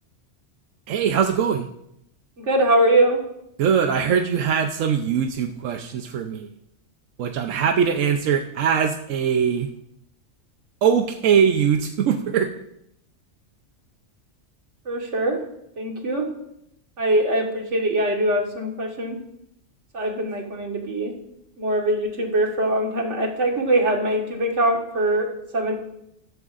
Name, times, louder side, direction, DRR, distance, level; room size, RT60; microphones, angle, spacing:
voice 1, 0.9-1.7 3.6-6.5 7.2-9.7 10.8-12.5, right 7 dB, 90° right, 5 dB, 1.1 m, -21 dB
voice 2, 2.4-3.2 14.9-15.4 15.8-16.3 17.0-19.2 19.9-21.1 21.6-25.8, right 1 dB, 70° right, 1 dB, 2.0 m, -22 dB
14.0 x 12.0 x 2.5 m, 0.80 s
omnidirectional pair, 1.3 m